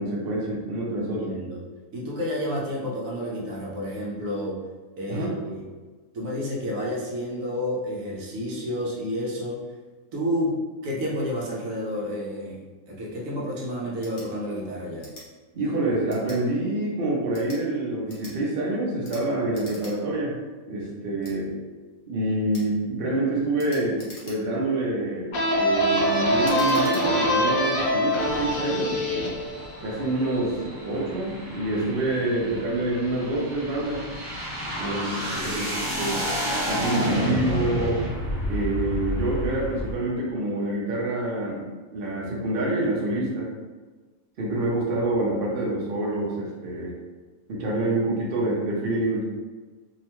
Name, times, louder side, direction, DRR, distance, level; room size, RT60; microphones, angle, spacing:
voice 1, 0.0-1.3 5.1-5.3 15.5-20.4 20.7-21.5 22.1-29.0 29.8-34.0 34.8-36.2 36.7-38.0 38.5-43.5 44.4-46.9 47.5-49.4, right 2 dB, 55° right, -4 dB, 0.7 m, -27 dB
voice 2, 1.0-1.6 1.9-4.6 5.0-5.7 6.1-9.6 10.1-12.6 12.9-15.1 34.8-35.0 35.3-35.8, equal, 70° right, -4 dB, 1.0 m, -30 dB
sound 1, 13.9-14.3 15.0-15.3 16.1-16.4 17.2-17.6 18.1-18.4 19.0-19.2 19.5-19.9 20.3-20.4 21.2-21.4 22.5-22.7 23.6-24.6 25.2-25.5 26.4-27.0, left 1 dB, 55° left, 1.0 m, -45 dB
sound 2, 25.3-30.8, equal, 80° left, 0.5 m, -24 dB
sound 3, 28.2-39.9, equal, 35° right, 1.1 m, -31 dB
2.7 x 2.1 x 2.9 m, 1.3 s
omnidirectional pair, 1.5 m